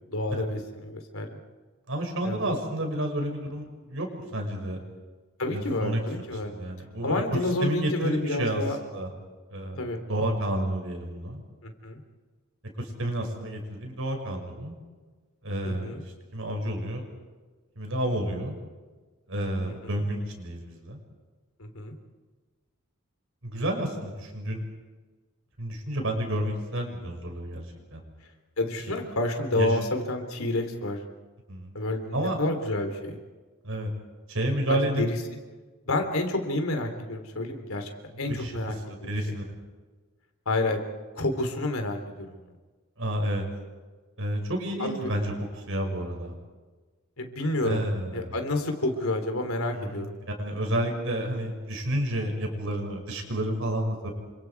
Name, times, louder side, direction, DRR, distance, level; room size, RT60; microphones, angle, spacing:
voice 1, 0.1-1.3 2.2-2.6 5.4-6.5 7.0-8.8 9.8-10.0 11.6-12.0 15.6-16.0 19.6-19.7 21.6-22.0 28.6-31.0 31.7-33.2 34.7-35.2 35.9-37.9 38.2-38.8 39.0-39.1 40.5-40.8 41.2-42.4 44.8-45.1 47.2-47.8 48.1-50.1, left 2 dB, 75° left, 5 dB, 3.6 m, -29 dB
voice 2, 1.9-4.1 4.3-4.8 5.5-6.0 6.3-9.1 9.5-11.4 12.8-14.7 15.4-16.0 16.3-17.0 17.7-18.5 19.3-21.0 23.4-24.6 25.6-27.6 27.9-28.0 29.5-29.8 31.5-31.7 32.1-32.4 33.6-33.9 34.3-35.1 38.3-38.5 38.9-39.4 43.0-43.4 44.2-46.4 47.6-48.4 49.7-54.1, right 1 dB, 65° right, 2 dB, 6.4 m, -30 dB
29.0 x 26.0 x 4.8 m, 1.3 s
head